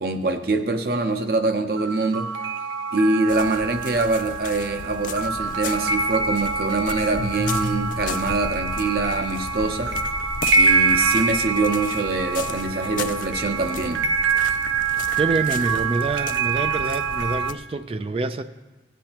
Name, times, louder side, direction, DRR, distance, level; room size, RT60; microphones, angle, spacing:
voice 1, 0.0-2.3 2.9-9.9 10.6-14.0, right 2 dB, 55° right, 6 dB, 0.7 m, -24 dB
sound 1, 1.8-17.5, right 5 dB, 85° right, 0.5 m, -25 dB
sound 2, 3.3-17.5, left 5 dB, 45° left, 0.3 m, -35 dB
voice 2, 15.2-18.4, right 3 dB, 30° right, 11 dB, 0.3 m, -26 dB
17.0 x 8.3 x 3.0 m, 1.2 s
head